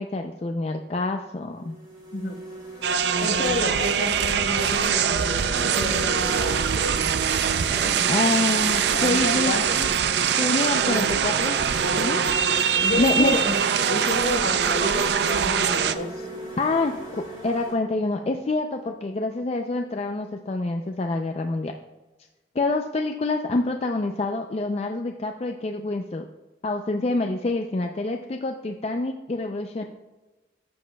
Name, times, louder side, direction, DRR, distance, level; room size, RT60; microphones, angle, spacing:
voice 1, 0.0-1.8 8.1-9.6 10.4-11.6 12.0-12.2 13.0-13.4 16.6-21.7 22.5-26.3 26.6-29.8, left 2 dB, 35° left, 4 dB, 0.4 m, -26 dB
sound 1, 0.8-1.0 1.6-17.7, equal, 25° right, 3.1 m, -38 dB
shantou street, 2.8-15.9, right 7 dB, 70° right, 0.4 m, -23 dB
voice 2, 3.2-6.6 7.8-7.9 8.9-10.0 10.9-11.1 12.8-13.6 13.9-16.3, left 2 dB, 55° left, 4 dB, 1.0 m, -30 dB
14.0 x 7.3 x 2.2 m, 1.1 s
head